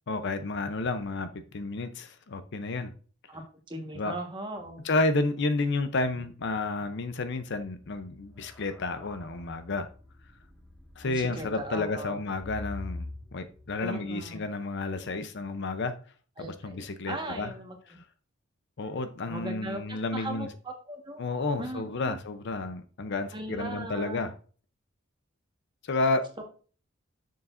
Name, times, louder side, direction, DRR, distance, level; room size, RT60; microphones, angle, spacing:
voice 1, 0.1-2.9 4.0-4.1 4.8-9.9 11.0-15.9 16.4-17.5 18.8-20.5 21.2-24.3 25.8-26.3, left 3 dB, 60° left, 0.6 m, -31 dB
voice 2, 3.7-4.9 11.0-12.2 13.8-14.5 16.4-18.0 19.2-21.2 21.6-22.2 23.3-24.3, right 1 dB, 25° right, 1.4 m, -38 dB
sound 1, 7.7-13.8, left 2 dB, ahead, 2.4 m, -45 dB
7.0 x 6.4 x 2.5 m
head